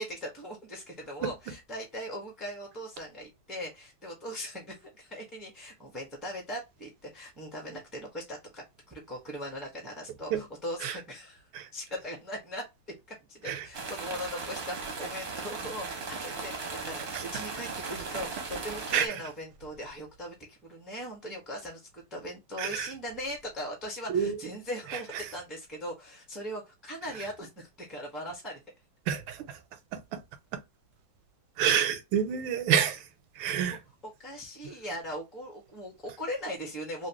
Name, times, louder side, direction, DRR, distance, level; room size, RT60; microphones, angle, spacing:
voice 1, 0.0-12.6 13.1-28.6 33.5-37.1, equal, ahead, 0.8 m, -40 dB
sound 1, 13.7-19.1, right 4 dB, 45° right, 0.8 m, -37 dB
voice 2, 22.6-22.9 24.1-24.3 29.1-29.4 30.1-30.2 31.6-33.0 33.4-33.8, right 9 dB, 85° right, 1.5 m, -27 dB
3.1 x 2.9 x 2.9 m
omnidirectional pair, 2.1 m